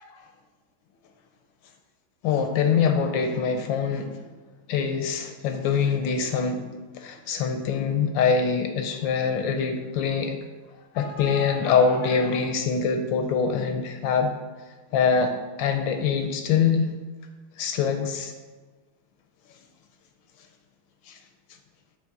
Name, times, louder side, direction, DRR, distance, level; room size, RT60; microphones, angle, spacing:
voice 1, 2.2-4.1 4.7-6.6 7.0-10.4 10.9-14.3 14.9-15.3 15.6-16.9 17.6-18.3, left 6 dB, 75° left, 6 dB, 1.2 m, -24 dB
6.3 x 3.7 x 5.8 m, 1.3 s
omnidirectional pair, 2.3 m